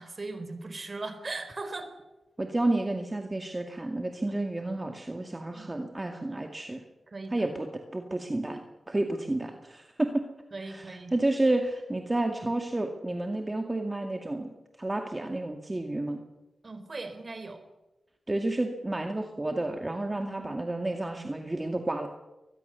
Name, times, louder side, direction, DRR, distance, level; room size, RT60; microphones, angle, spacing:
voice 1, 0.0-1.9 4.3-4.4 5.5-5.7 7.1-7.5 10.5-11.1 16.6-17.6 20.1-20.3, right 3 dB, 40° right, 8 dB, 4.2 m, -39 dB
voice 2, 2.4-6.8 7.3-7.7 7.9-10.2 10.6-14.5 14.8-16.2 18.3-22.1, right 2 dB, 20° right, 4 dB, 2.1 m, -30 dB
23.5 x 20.0 x 7.0 m, 1.0 s
wide cardioid pair, 80°, 0 cm